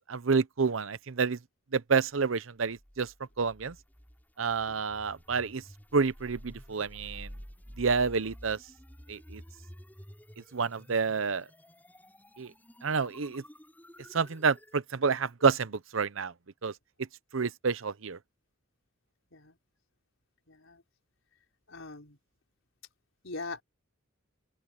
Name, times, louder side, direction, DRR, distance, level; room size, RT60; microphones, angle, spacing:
voice 1, 0.1-1.4 1.7-3.1 3.4-3.7 4.4-5.6 5.9-7.3 7.8-8.6 9.1-9.4 10.5-11.5 12.4-12.5 12.8-13.4 14.1-16.3 16.6-16.7 17.3-18.2, right 5 dB, 75° right, 0.8 m, -29 dB
sound 1, 2.7-14.8, equal, 10° left, 7.7 m, -51 dB
voice 2, 20.5-20.8 21.7-22.2 23.2-23.6, left 3 dB, 75° left, 4.6 m, -42 dB
open air
head